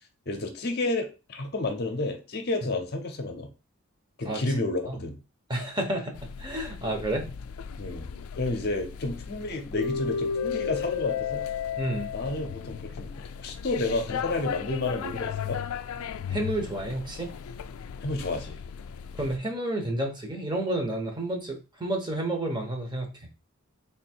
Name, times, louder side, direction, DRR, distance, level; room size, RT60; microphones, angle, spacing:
voice 1, 0.3-3.5 4.2-5.2 7.8-8.1 8.4-11.5 12.1-13.1 13.4-15.6 18.0-18.6, left 2 dB, 50° left, 5 dB, 0.7 m, -30 dB
voice 2, 5.5-7.3 11.8-12.1 16.3-17.3 19.1-23.2, right 1 dB, 20° right, 3 dB, 0.9 m, -30 dB
sound 1, 6.1-19.4, left 7 dB, 85° left, 0.3 m, -35 dB
3.5 x 2.7 x 4.3 m, 0.31 s
head